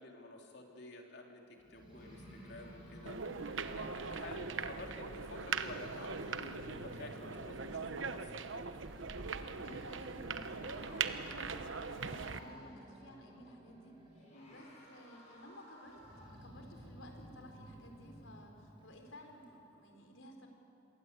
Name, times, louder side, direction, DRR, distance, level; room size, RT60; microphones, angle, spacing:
voice 1, 0.0-3.2 3.7-8.6 14.3-14.6, left 2 dB, 60° left, 1 dB, 3.4 m, -50 dB
Growling, 1.6-5.3 5.6-8.0 8.5-14.4 14.7-15.4 15.9-19.6, equal, 25° right, 4.6 m, -56 dB
sound 1, 1.9-4.7 8.9-9.0 10.3-13.0 14.1-16.6, left 1 dB, 35° left, 7.0 m, -60 dB
sound 2, 3.1-12.4, right 5 dB, 80° right, 1.0 m, -41 dB
voice 2, 9.6-16.0 16.4-20.5, equal, 85° left, 3 dB, 4.2 m, -55 dB
27.0 x 22.0 x 8.4 m, 2.8 s
head